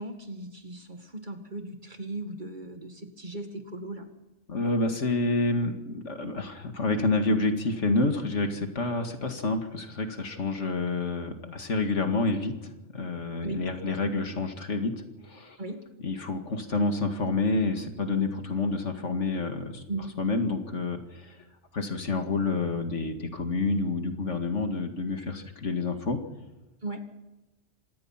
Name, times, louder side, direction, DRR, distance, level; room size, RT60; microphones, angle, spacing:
voice 1, 0.0-4.1 13.4-14.0 15.6-15.8 19.9-20.1 26.8-27.0, right 2 dB, 40° right, 5 dB, 2.2 m, -37 dB
voice 2, 4.5-15.6 16.0-19.8 20.2-21.4 21.7-26.2, left 3 dB, 80° left, 6 dB, 2.4 m, -28 dB
25.5 x 18.5 x 5.9 m, 1.1 s
omnidirectional pair, 1.2 m